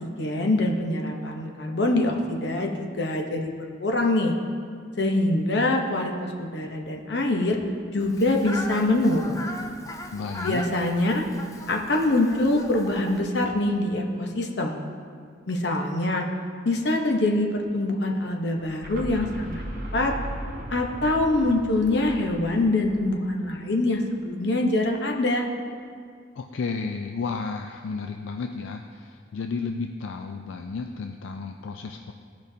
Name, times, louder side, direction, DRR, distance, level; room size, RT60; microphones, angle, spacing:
voice 1, 0.0-3.5 3.8-4.3 5.0-7.6 7.9-9.4 10.4-11.2 11.7-14.7 15.5-16.2 16.6-19.6 19.9-20.1 20.7-25.4, left 2 dB, 60° left, 1 dB, 0.9 m, -24 dB
Fowl, 8.0-13.2, left 1 dB, 15° left, 0.4 m, -38 dB
voice 2, 10.1-10.6 26.4-32.1, left 4 dB, 80° left, 4 dB, 0.4 m, -32 dB
sound 1, 18.6-24.3, equal, 50° right, 1.1 m, -38 dB
15.0 x 5.1 x 2.8 m, 2.2 s
head